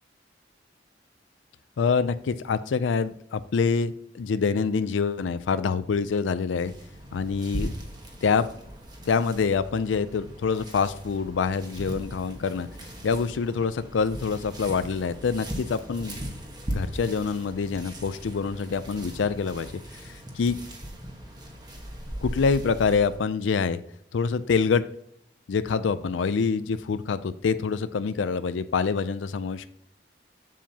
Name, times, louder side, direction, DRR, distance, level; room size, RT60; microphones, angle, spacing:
voice 1, 1.8-6.7 7.1-7.7 8.2-8.5 9.1-12.7 13.0-16.2 16.7-19.7 20.0-20.6 22.2-23.8 24.1-24.8 25.5-29.7, left 5 dB, 85° left, 12 dB, 0.4 m, -26 dB
sound 1, 6.5-23.2, equal, 20° right, 1.2 m, -39 dB
7.4 x 7.2 x 2.8 m, 0.69 s
head